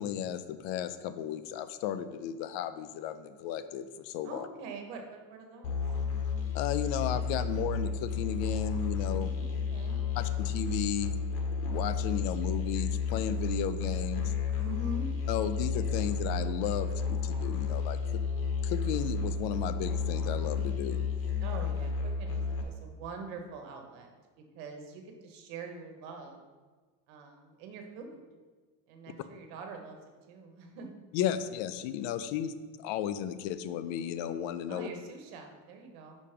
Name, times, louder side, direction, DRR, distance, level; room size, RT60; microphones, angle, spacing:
voice 1, 0.0-4.5 6.5-9.3 10.2-11.2 11.6-14.3 15.3-18.0 18.6-21.0 31.1-34.9, left 10 dB, 75° left, 12 dB, 0.6 m, -34 dB
voice 2, 4.2-5.8 9.1-10.0 14.6-15.1 21.4-24.1 24.5-26.4 27.1-28.2 28.9-30.9 34.7-36.2, right 3 dB, 85° right, 4 dB, 1.3 m, -44 dB
Musical instrument, 5.6-22.6, left 5 dB, 55° left, 1.3 m, -32 dB
5.8 x 5.2 x 5.0 m, 1.4 s
cardioid pair, 135°, 44 cm